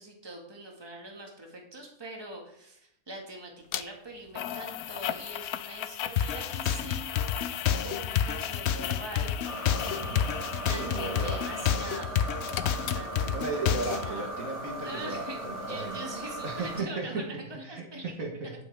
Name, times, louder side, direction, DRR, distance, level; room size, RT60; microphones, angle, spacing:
voice 1, 0.0-7.2 7.8-9.4 10.6-14.3 14.8-15.4 15.7-17.2 17.5-18.0, right 1 dB, 15° right, 0 dB, 1.9 m, -43 dB
sound 1, 3.7-3.8 4.4-11.8 12.1-13.5 13.8-13.9, left 12 dB, 80° left, 1.1 m, -37 dB
sound 2, 6.2-14.1, left 8 dB, 60° left, 0.7 m, -29 dB
sound 3, 9.4-16.8, right 1 dB, 40° right, 4.3 m, -38 dB
voice 2, 10.0-10.3 10.7-11.5 13.3-16.0 16.4-17.3 17.6-18.5, right 3 dB, 60° right, 1 dB, 1.9 m, -36 dB
10.0 x 8.8 x 3.6 m, 0.74 s
omnidirectional pair, 1.6 m